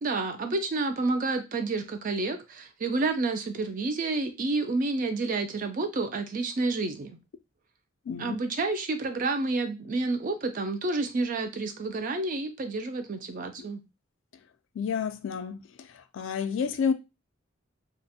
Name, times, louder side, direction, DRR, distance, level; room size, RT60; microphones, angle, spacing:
voice 1, 0.0-7.2 8.2-13.8, right 3 dB, 40° right, 0.4 m, -29 dB
voice 2, 8.1-8.4 14.8-16.9, left 6 dB, 70° left, 0.3 m, -30 dB
2.4 x 2.1 x 2.7 m
head